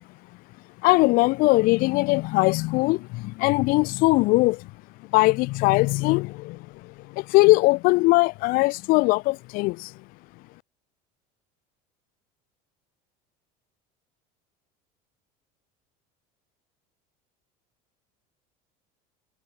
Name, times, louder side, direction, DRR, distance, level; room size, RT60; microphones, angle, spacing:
voice 1, 0.8-4.7 5.1-9.9, left 23 dB, 55° left, 1.0 m, -21 dB
cardioid pair, 160°, 18 cm